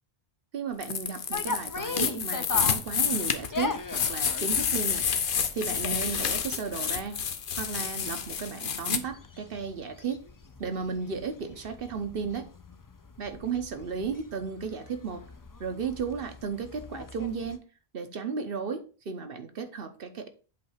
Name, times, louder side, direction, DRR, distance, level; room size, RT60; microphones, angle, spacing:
voice 1, 0.5-5.1 5.5-7.2 7.5-10.2 10.6-12.5 13.2-15.2 15.6-17.6 17.9-20.3, right 5 dB, 65° right, 8 dB, 1.1 m, -34 dB
sound 1, 0.8-9.0, left 7 dB, 60° left, 0.8 m, -29 dB
sound 2, 1.3-17.6, left 4 dB, 30° left, 0.4 m, -40 dB
8.0 x 3.3 x 5.6 m, 0.37 s
omnidirectional pair, 1.1 m